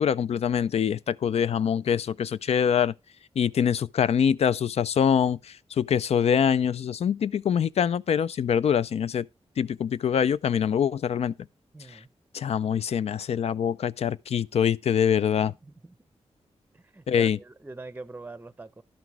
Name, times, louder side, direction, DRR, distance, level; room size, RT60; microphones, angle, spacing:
voice 1, 0.0-2.9 3.4-9.3 9.6-11.3 11.9-12.0 12.3-15.5 17.1-17.4, left 8 dB, 70° left, 0.4 m, -24 dB
voice 2, 11.7-12.1 15.6-15.9 16.7-18.8, right 3 dB, 15° right, 0.6 m, -43 dB
11.5 x 6.0 x 4.7 m
wide cardioid pair, 95°, 11 cm